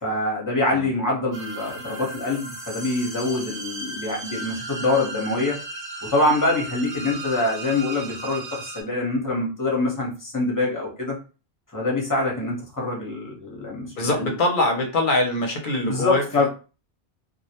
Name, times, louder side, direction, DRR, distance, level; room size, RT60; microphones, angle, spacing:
voice 1, 0.0-5.6 6.0-11.1 11.7-14.3 15.9-16.5, left 2 dB, 20° left, -2 dB, 0.8 m, -25 dB
sound 1, 1.3-8.8, right 2 dB, 65° right, 0.8 m, -36 dB
voice 2, 14.0-16.2, left 2 dB, 60° left, 2 dB, 0.7 m, -23 dB
2.3 x 2.0 x 2.8 m, 0.34 s
omnidirectional pair, 1.1 m